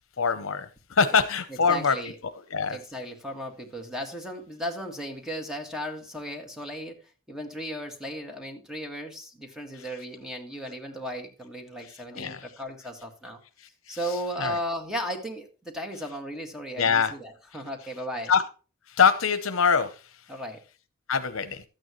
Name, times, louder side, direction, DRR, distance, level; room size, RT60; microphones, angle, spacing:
voice 1, 0.2-1.9 2.5-2.8 12.1-12.4 13.9-14.0 14.4-14.6 16.8-17.1 18.3-18.4 18.9-20.0 21.1-21.6, left 6 dB, 75° left, 10 dB, 0.8 m, -23 dB
voice 2, 1.5-2.2 2.7-13.4 13.9-18.3 20.3-20.6, equal, 5° right, 3 dB, 1.8 m, -36 dB
12.5 x 9.0 x 3.1 m, 0.35 s
head